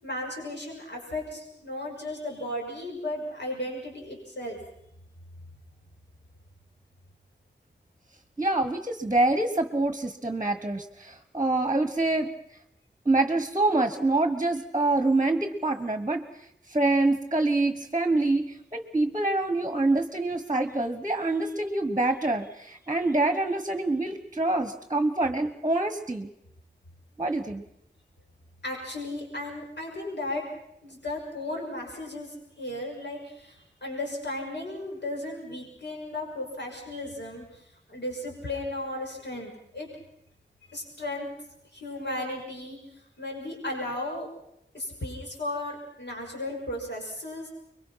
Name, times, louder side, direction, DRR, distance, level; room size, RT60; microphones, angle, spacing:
voice 1, 0.0-4.6 28.6-30.4 30.8-39.9 40.7-41.3 41.7-44.3 44.7-47.5, left 1 dB, 70° left, -1 dB, 6.3 m, -35 dB
voice 2, 8.4-12.3 13.0-16.2 16.7-26.3 27.2-27.6, right 2 dB, 20° right, 7 dB, 1.4 m, -26 dB
25.5 x 22.5 x 5.9 m, 0.76 s
wide cardioid pair, 70°, 19 cm